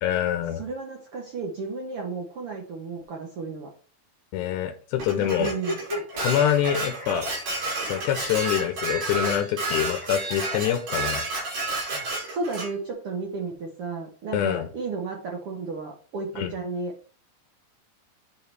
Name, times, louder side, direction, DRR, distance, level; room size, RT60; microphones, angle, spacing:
voice 1, 0.0-0.6 4.3-5.5 6.2-7.3 7.8-11.2 14.3-14.7 16.4-16.5, left 10 dB, 80° left, 6 dB, 2.0 m, -25 dB
voice 2, 0.6-3.7 5.4-5.8 12.3-17.2, right 4 dB, 65° right, 1 dB, 1.5 m, -33 dB
Dishes pots and pans, 5.0-12.7, right 2 dB, 90° right, 5.9 m, -31 dB
sound 1, 5.1-7.7 7.9-9.3 9.6-9.7 10.0-10.1 10.4-10.6 11.6-12.6, left 1 dB, 15° left, 1.4 m, -37 dB
9.4 x 4.6 x 3.3 m, 0.40 s
omnidirectional pair, 4.0 m